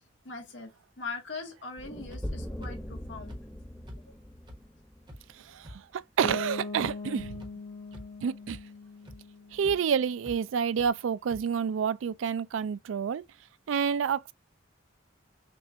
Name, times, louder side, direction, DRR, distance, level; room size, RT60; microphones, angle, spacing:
voice 1, 0.2-3.4 4.1-4.2, left 4 dB, 75° left, 1.4 m, -41 dB
sound 1, 1.8-5.9, equal, 5° left, 0.7 m, -41 dB
sound 2, 2.1-2.2 2.6-2.7 3.3-3.4 3.9-4.0 4.5-4.6 5.1-5.2 5.6-5.7 6.2-6.3 6.8-6.9 7.4-7.5 7.9-8.2 8.5-8.6 9.1-9.2 9.6-9.8 10.2-10.4 10.8-10.9 11.3-11.4, equal, 25° right, 1.1 m, -44 dB
voice 2, 5.5-7.4 8.2-8.6 9.5-13.2 13.7-14.3, right 7 dB, 90° right, 0.3 m, -29 dB
Bass guitar, 6.2-10.1, left 3 dB, 25° left, 1.0 m, -40 dB
6.0 x 2.4 x 2.8 m
head